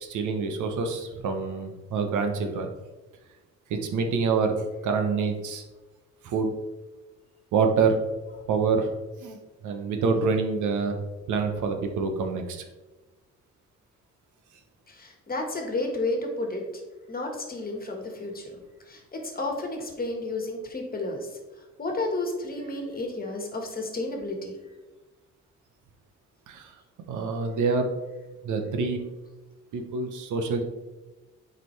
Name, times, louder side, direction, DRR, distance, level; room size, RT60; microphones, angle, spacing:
voice 1, 0.0-2.7 3.7-4.5 4.8-5.6 6.2-6.5 7.5-8.0 8.5-8.9 9.2-9.4 9.6-11.0 11.3-12.6 26.5-26.7 27.1-27.9 28.4-29.0 29.7-30.6, right 4 dB, 75° right, 4 dB, 1.0 m, -26 dB
voice 2, 14.9-16.6 17.1-18.4 18.9-21.3 21.8-24.5, left 2 dB, 30° left, 2 dB, 1.6 m, -31 dB
7.6 x 5.0 x 3.3 m, 1.2 s
cardioid pair, 90°, 30 cm